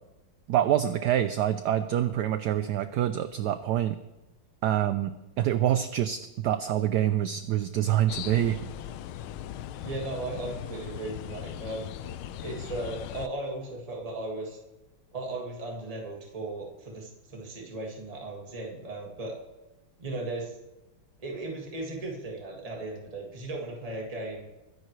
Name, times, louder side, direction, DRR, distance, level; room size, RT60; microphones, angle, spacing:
voice 1, 0.5-4.0 4.6-8.6, right 11 dB, 75° right, 12 dB, 0.9 m, -26 dB
sound 1, 8.1-13.3, left 11 dB, 90° left, 1.5 m, -39 dB
voice 2, 9.8-11.9 12.4-14.6 15.1-19.4 20.0-20.5 21.2-24.5, right 2 dB, 20° right, -1 dB, 1.9 m, -36 dB
22.0 x 10.5 x 3.2 m, 1.0 s
omnidirectional pair, 2.2 m